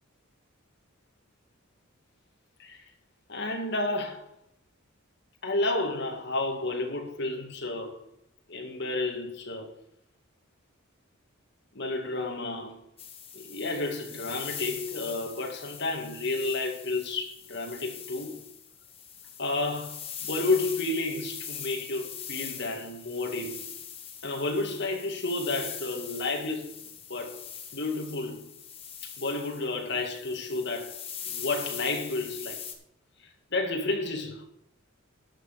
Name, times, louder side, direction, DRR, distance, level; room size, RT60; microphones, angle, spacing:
voice 1, 2.6-2.9 3.3-4.3 5.4-8.0 8.5-9.7 11.7-12.8 13.3-18.4 19.4-23.7 24.2-27.4 27.7-28.5 29.0-31.0 31.2-32.6 33.2-34.4, left 2 dB, 50° left, 2.1 m, -31 dB
sound 1, 13.0-32.7, left 8 dB, 25° left, 1.2 m, -42 dB
11.5 x 6.1 x 6.6 m
head